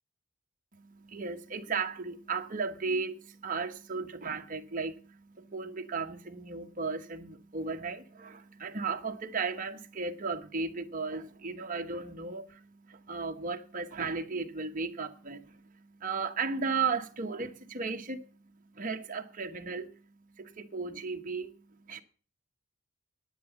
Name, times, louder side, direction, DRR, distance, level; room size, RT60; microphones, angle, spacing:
voice 1, 0.7-18.3 18.7-20.0 20.4-21.6 21.9-22.0, right 4 dB, 40° right, 1.1 m, -35 dB
10.0 x 8.8 x 7.0 m
head